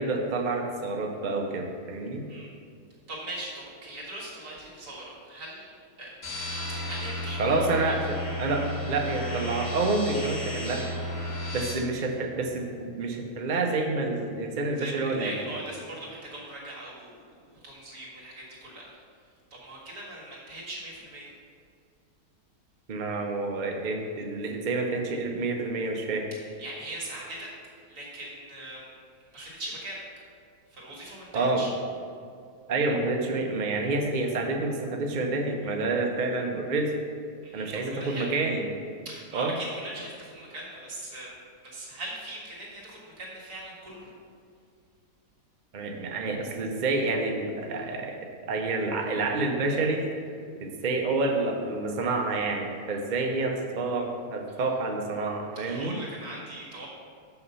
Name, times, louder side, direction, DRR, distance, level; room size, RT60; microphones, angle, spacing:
voice 1, 0.0-2.2 7.4-10.9 11.5-15.3 22.9-26.3 31.3-31.6 32.7-36.9 37.5-38.6 39.3-39.5 45.7-50.0 50.6-56.0, right 3 dB, 45° right, 2 dB, 0.6 m, -28 dB
voice 2, 3.1-6.2 6.8-8.0 14.8-18.9 19.5-21.3 26.3-27.5 27.9-28.9 29.3-30.0 30.7-31.7 37.4-38.3 39.1-44.1 55.6-56.9, right 1 dB, 70° right, -5 dB, 2.4 m, -40 dB
sound 1, 6.2-11.7, left 1 dB, 25° left, 2.1 m, -33 dB
6.7 x 5.9 x 5.5 m, 2.3 s
omnidirectional pair, 1.7 m